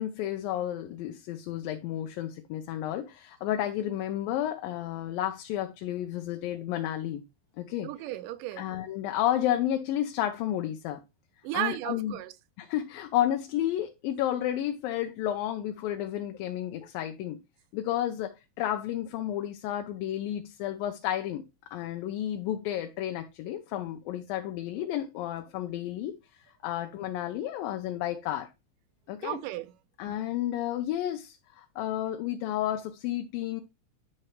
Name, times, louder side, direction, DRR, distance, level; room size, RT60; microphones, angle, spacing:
voice 1, 0.0-7.2 7.6-7.9 8.6-11.0 11.5-12.2 12.6-17.4 17.7-21.4 21.7-26.2 26.6-28.5 29.1-29.4 30.0-33.6, left 12 dB, 80° left, 2.6 m, -31 dB
voice 2, 7.8-8.7 11.4-12.3 29.2-29.7, right 15 dB, 80° right, 2.1 m, -34 dB
10.5 x 5.8 x 3.2 m
omnidirectional pair, 4.1 m